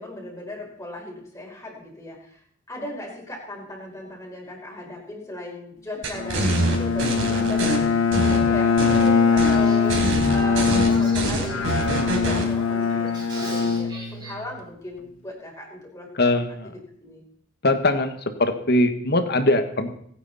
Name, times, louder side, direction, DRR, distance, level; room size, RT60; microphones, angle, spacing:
voice 1, 0.0-2.4 2.7-10.0 10.3-16.4 17.0-17.2, left 1 dB, 15° left, -2 dB, 5.2 m, -37 dB
sound 1, 6.0-7.8 8.1-9.1 9.4-9.6 9.9-12.5, right 1 dB, 65° right, 4.5 m, -25 dB
Bowed string instrument, 6.1-14.6, left 5 dB, 85° left, 1.2 m, -22 dB
Male speech man speaking / Female speech woman speaking / Conversation, 6.7-14.3, right 1 dB, 20° right, 5.1 m, -41 dB
voice 2, 16.1-16.7 17.6-18.1 18.4-19.9, left 2 dB, 55° left, 7 dB, 1.6 m, -21 dB
27.5 x 9.5 x 4.3 m, 0.64 s
head